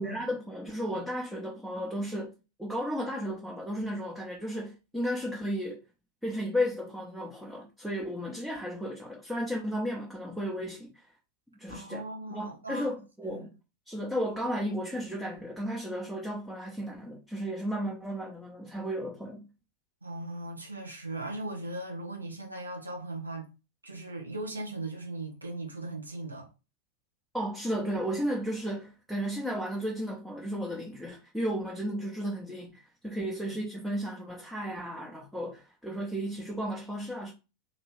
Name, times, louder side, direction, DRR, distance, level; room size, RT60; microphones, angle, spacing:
voice 1, 0.0-2.3 2.6-5.8 6.2-11.1 11.6-12.0 12.3-13.5 13.9-19.5 27.3-37.3, equal, ahead, 0.8 m, -34 dB
voice 2, 11.7-12.9 13.3-13.5 20.0-23.5 23.8-26.5 33.2-33.6, right 2 dB, 80° right, 0.9 m, -38 dB
2.9 x 2.7 x 3.1 m
figure-of-eight pair, 90°, 0 cm